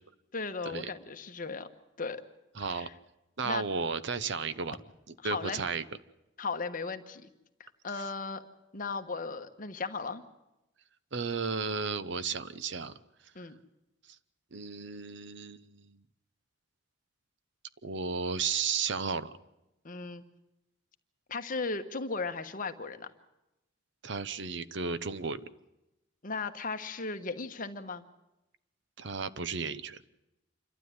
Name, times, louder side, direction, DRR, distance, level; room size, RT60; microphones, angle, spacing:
voice 1, 0.3-1.7 2.0-2.2 2.6-2.9 3.4-3.6 5.2-5.6 6.4-7.3 7.6-8.4 8.7-10.2 13.3-13.6 19.8-20.2 21.3-23.1 26.2-28.0, left 4 dB, 45° left, 8 dB, 1.2 m, -36 dB
voice 2, 2.6-2.9 3.4-4.8 5.1-5.8 7.9-8.1 11.1-13.0 14.5-16.0 17.8-19.3 24.0-25.4 29.0-30.0, right 5 dB, 65° right, 15 dB, 0.8 m, -34 dB
27.5 x 12.5 x 9.6 m, 0.95 s
head